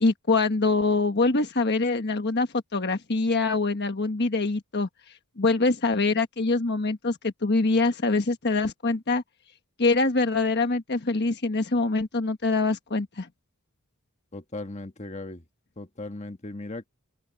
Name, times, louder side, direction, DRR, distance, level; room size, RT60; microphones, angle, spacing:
voice 1, 0.0-4.9 5.4-9.2 9.8-13.3, left 3 dB, 50° left, 1.3 m, -24 dB
voice 2, 14.3-15.4 15.8-16.9, left 2 dB, 30° left, 1.5 m, -37 dB
open air
head